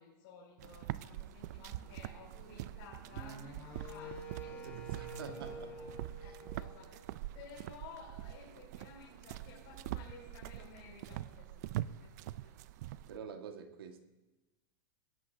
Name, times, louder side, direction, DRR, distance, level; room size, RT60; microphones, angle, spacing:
voice 1, 0.0-5.2 5.8-5.9 6.2-12.5, left 5 dB, 45° left, 5.5 m, -55 dB
sound 1, 0.6-13.2, right 14 dB, 50° right, 0.4 m, -44 dB
Wind instrument woodwind instrument, 3.1-7.3, right 1 dB, 15° left, 4.4 m, -48 dB
voice 2, 4.4-5.9 13.1-14.0, right 5 dB, 85° right, 1.7 m, -47 dB
22.5 x 16.5 x 2.8 m
supercardioid pair, 160°, 12 cm